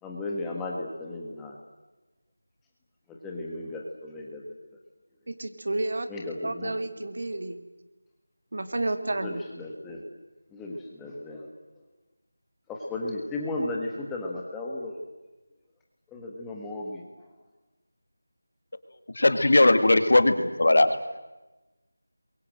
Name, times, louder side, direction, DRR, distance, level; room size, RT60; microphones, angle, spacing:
voice 1, 0.0-1.6 3.1-4.4 6.1-6.8 9.2-10.0 10.5-11.5 12.7-15.0 16.1-17.0, left 2 dB, 5° left, -1 dB, 1.6 m, -35 dB
voice 2, 5.3-6.1 6.4-7.6 8.5-9.4, right 2 dB, 45° right, 9 dB, 2.1 m, -30 dB
voice 3, 19.1-21.2, left 2 dB, 55° left, 10 dB, 2.1 m, -20 dB
30.0 x 23.0 x 7.8 m, 1.1 s
figure-of-eight pair, 175°, 0 cm